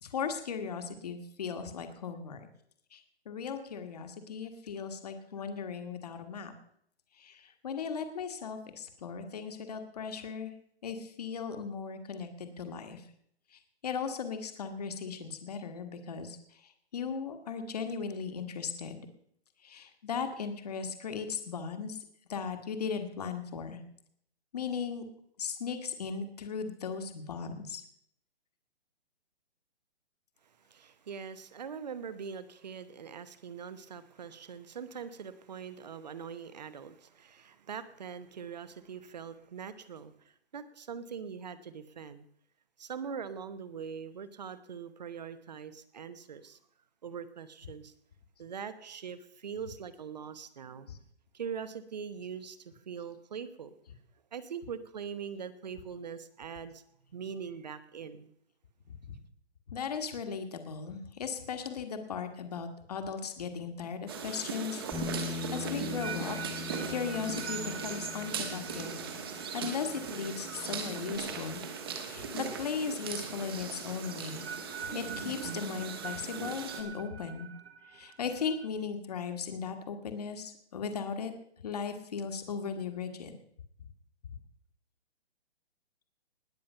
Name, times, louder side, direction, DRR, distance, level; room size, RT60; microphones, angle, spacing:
voice 1, 0.0-2.5 2.9-3.0 3.2-6.5 7.2-10.5 10.8-13.0 13.8-16.4 16.9-19.1 19.6-22.0 22.3-23.8 24.5-25.0 25.4-27.8 50.9-51.0 59.7-66.4 66.9-69.0 69.3-71.6 72.1-74.4 74.9-77.5 77.9-81.3 81.6-83.4, left 6 dB, 35° left, 7 dB, 1.5 m, -37 dB
voice 2, 30.7-40.1 40.5-42.2 42.8-46.6 47.0-47.9 48.4-50.9 51.3-53.7 54.3-56.8 57.1-58.3, right 7 dB, 40° right, 14 dB, 0.9 m, -42 dB
sound 1, 64.1-76.8, right 6 dB, 20° right, 1.2 m, -39 dB
Bass guitar, 64.9-71.2, left 5 dB, ahead, 1.0 m, -42 dB
sound 2, 65.4-72.2 72.4-72.9 74.1-78.7, right 6 dB, 70° right, 1.5 m, -46 dB
20.0 x 7.4 x 5.5 m, 0.68 s
hypercardioid pair, 175°, 33 cm